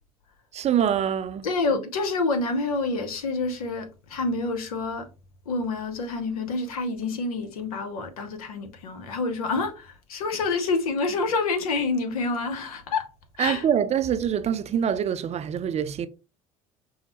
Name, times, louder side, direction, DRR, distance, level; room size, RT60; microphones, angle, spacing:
voice 1, 0.5-1.5 13.4-16.1, right 9 dB, 35° right, 0.4 m, -25 dB
voice 2, 1.4-5.1 5.5-13.1 13.4-13.7, left 3 dB, 80° left, 0.7 m, -27 dB
5.3 x 2.0 x 2.9 m
hypercardioid pair, 60°, 19 cm